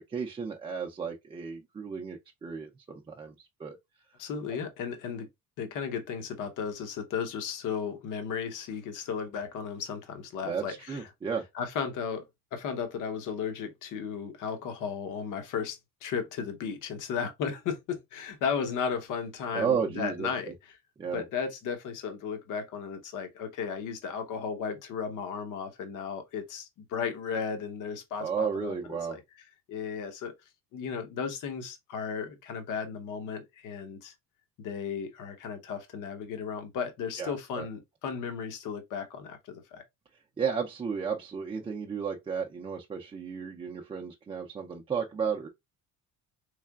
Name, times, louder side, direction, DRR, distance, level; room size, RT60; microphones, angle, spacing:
voice 1, 0.1-3.3 3.6-3.8 10.4-11.4 19.5-20.5 21.0-21.2 28.2-29.2 37.2-37.7 40.4-45.5, right 6 dB, 15° right, 0.3 m, -33 dB
voice 2, 4.2-5.3 5.6-11.0 11.5-12.2 12.5-20.5 21.1-29.2 29.7-30.3 30.7-34.1 34.6-39.8, left 6 dB, 65° left, 0.9 m, -35 dB
3.6 x 3.3 x 2.2 m
cardioid pair, 160°, 33 cm